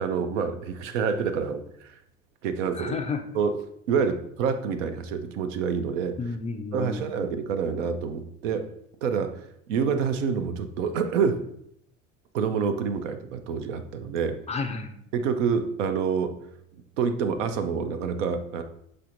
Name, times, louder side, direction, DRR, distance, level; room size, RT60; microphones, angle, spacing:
voice 1, 0.0-1.9 2.4-3.0 3.3-3.6 3.9-6.2 6.7-8.7 9.0-11.5 12.3-14.4 15.1-16.4 17.0-18.6, right 6 dB, 80° right, 9 dB, 0.6 m, -27 dB
voice 2, 2.7-3.2 6.2-7.2 14.5-15.0, left 4 dB, 20° left, 6 dB, 0.3 m, -32 dB
5.6 x 3.3 x 2.5 m, 0.73 s
hypercardioid pair, 75°, 37 cm